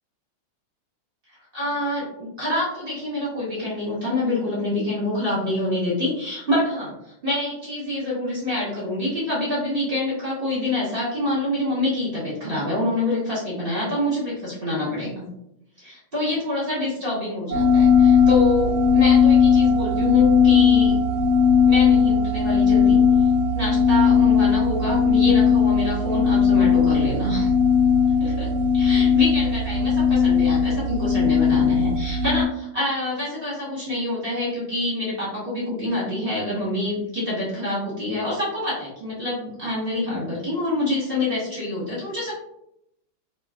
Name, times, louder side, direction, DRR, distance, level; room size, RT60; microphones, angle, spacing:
voice 1, 1.5-15.2 15.8-20.9 21.6-23.0 23.5-27.5 28.2-42.3, left 1 dB, 35° right, -8 dB, 1.0 m, -26 dB
sound 1, 17.5-32.5, left 6 dB, 75° right, 1.2 m, -18 dB
3.0 x 2.8 x 2.3 m, 0.76 s
omnidirectional pair, 2.3 m